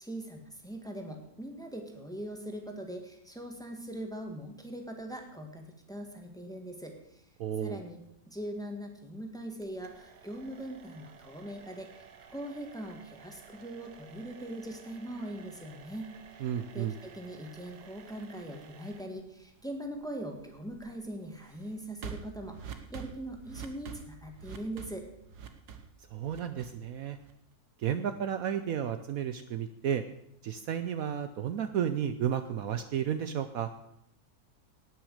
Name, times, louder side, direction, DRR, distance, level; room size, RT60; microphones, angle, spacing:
voice 1, 0.0-7.2 7.6-8.0 8.3-16.1 16.7-25.0, right 1 dB, ahead, 3 dB, 1.6 m, -41 dB
voice 2, 7.4-7.8 16.4-16.9 26.1-27.2 27.8-30.0 30.4-33.7, right 9 dB, 65° right, 9 dB, 1.0 m, -32 dB
sound 1, 9.6-27.5, right 7 dB, 85° right, 1.7 m, -50 dB
18.0 x 6.2 x 6.6 m, 0.75 s
omnidirectional pair, 1.7 m